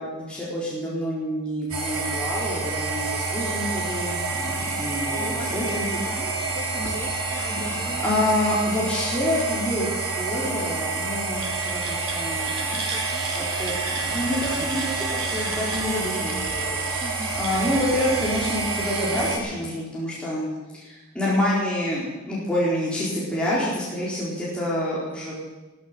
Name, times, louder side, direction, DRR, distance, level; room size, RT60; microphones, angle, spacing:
voice 1, 0.0-5.9 8.0-12.8 13.4-16.8 17.4-25.4, left 1 dB, 5° left, -7 dB, 4.1 m, -27 dB
sound 1, 1.7-19.4, right 3 dB, 85° right, 3.3 m, -28 dB
voice 2, 5.2-9.0 12.7-13.5 17.0-17.4, left 1 dB, 20° left, 2 dB, 2.3 m, -38 dB
15.0 x 13.5 x 6.9 m, 1.1 s
head